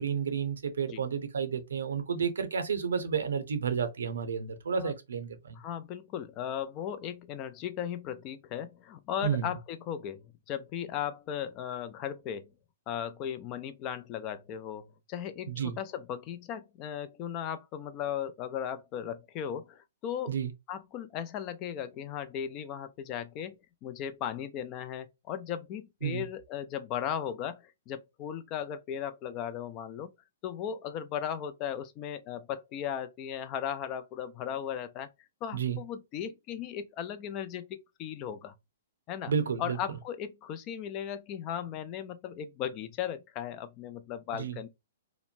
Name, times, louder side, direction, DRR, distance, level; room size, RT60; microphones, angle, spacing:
voice 1, 0.0-5.6 9.2-9.5 15.5-15.8 20.3-20.5 26.0-26.2 35.5-35.8 39.3-39.8 44.4-44.6, right 7 dB, 85° right, 0.7 m, -31 dB
voice 2, 5.5-12.5 12.9-20.4 20.7-23.6 23.8-30.1 30.4-35.1 35.4-38.5 39.1-39.3 39.6-44.7, left 9 dB, 35° left, 0.4 m, -37 dB
2.9 x 2.1 x 2.5 m
hypercardioid pair, 135°, 0 cm